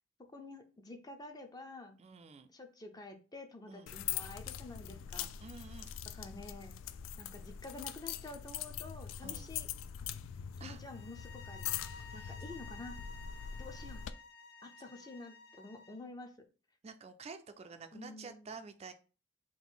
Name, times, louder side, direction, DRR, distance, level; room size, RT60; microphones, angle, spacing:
voice 1, 0.3-2.0 2.5-5.3 6.1-6.8 7.2-9.7 10.6-13.0 13.5-14.1 14.6-16.3 17.9-18.5, left 2 dB, 20° left, 5 dB, 0.5 m, -49 dB
voice 2, 2.0-2.5 3.7-3.9 5.4-5.9 9.2-9.5 10.6-10.8 12.1-12.4 16.8-18.9, right 4 dB, 35° right, 8 dB, 0.3 m, -50 dB
sound 1, 3.9-14.1, left 9 dB, 90° left, 0.3 m, -42 dB
sound 2, 10.9-16.0, left 3 dB, 60° left, 0.7 m, -53 dB
3.8 x 2.6 x 3.9 m, 0.35 s
head